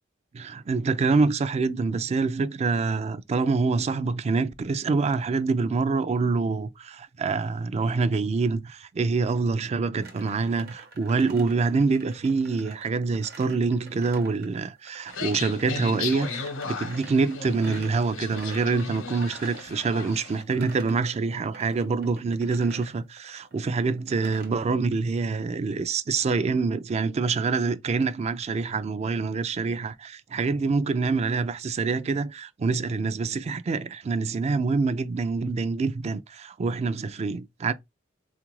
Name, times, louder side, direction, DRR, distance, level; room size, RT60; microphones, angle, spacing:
voice 1, 0.3-37.7, right 4 dB, 35° right, 0.3 m, -26 dB
sound 1, 10.0-24.6, right 3 dB, 50° right, 0.8 m, -47 dB
sound 2, 15.1-20.4, left 5 dB, 75° left, 0.8 m, -35 dB
3.7 x 2.4 x 2.9 m
head